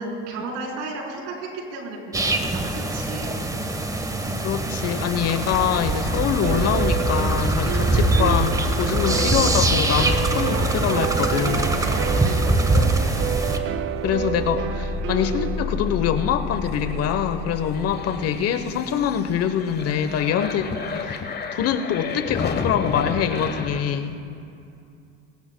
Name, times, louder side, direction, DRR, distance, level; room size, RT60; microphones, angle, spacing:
voice 1, 0.0-3.4 12.2-12.7, right 2 dB, 75° right, -1 dB, 4.1 m, -34 dB
sound 1, 2.1-13.6, right 2 dB, 10° right, 1.2 m, -23 dB
voice 2, 4.3-11.8 14.0-20.7 20.9-24.2, left 8 dB, 50° left, 9 dB, 1.0 m, -24 dB
sound 2, 5.5-23.8, left 4 dB, 30° left, 1.2 m, -32 dB
sound 3, 6.4-16.3, right 11 dB, 40° right, 0.5 m, -30 dB
22.0 x 18.0 x 2.2 m, 2.5 s
hypercardioid pair, 85°, 32 cm